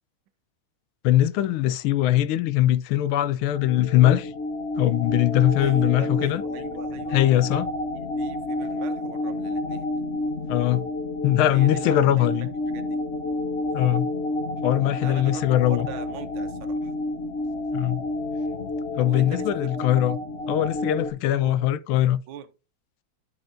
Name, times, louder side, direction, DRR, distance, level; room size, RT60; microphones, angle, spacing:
voice 1, 1.0-4.3 4.8-6.4 7.1-7.7 10.4-10.9 11.2-12.5 13.7-14.1 14.6-15.9 17.7-18.0 19.0-20.2 20.5-22.2, left 13 dB, 85° left, 1.4 m, -21 dB
sound 1, 3.5-21.1, left 2 dB, 60° left, 0.6 m, -30 dB
voice 2, 5.6-7.2 7.9-9.9 11.5-13.0 15.0-16.9 19.0-19.7 21.4-21.6 22.3-22.5, right 10 dB, 75° right, 1.6 m, -42 dB
13.5 x 4.6 x 2.6 m
omnidirectional pair, 2.3 m